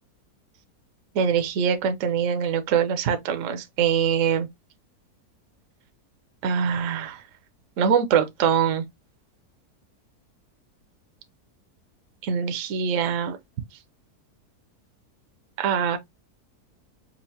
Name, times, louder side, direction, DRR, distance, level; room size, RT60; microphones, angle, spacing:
voice 1, 1.1-4.5 6.4-7.2 7.8-8.8 12.2-13.4 15.6-16.0, right 7 dB, 65° right, 0.9 m, -23 dB
5.5 x 2.4 x 2.7 m
omnidirectional pair, 1.7 m